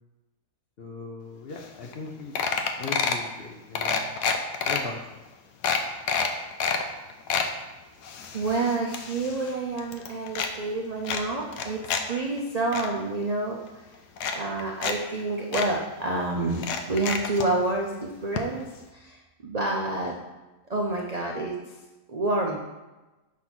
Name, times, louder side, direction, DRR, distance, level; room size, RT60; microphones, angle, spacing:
voice 1, 0.8-2.4 2.8-4.0 4.6-5.0, left 4 dB, 55° left, 1 dB, 0.7 m, -38 dB
sound 1, 1.6-1.7 1.9-2.1 2.4-3.3 3.7-4.8 5.3-5.4 5.6-6.8 7.1-7.5 8.0-9.5 9.8-10.5 11.0-12.0 12.4-12.9 13.7-13.8 14.2-14.9 15.2-15.3 15.5-15.7 16.5-17.5 18.4-18.5 18.7-18.8, left 6 dB, 90° left, 1.2 m, -28 dB
voice 2, 8.3-13.8 14.3-20.2 20.7-21.7 22.1-22.6, right 2 dB, 80° right, 0 dB, 0.3 m, -28 dB
6.0 x 4.1 x 6.0 m, 1.1 s
omnidirectional pair, 1.7 m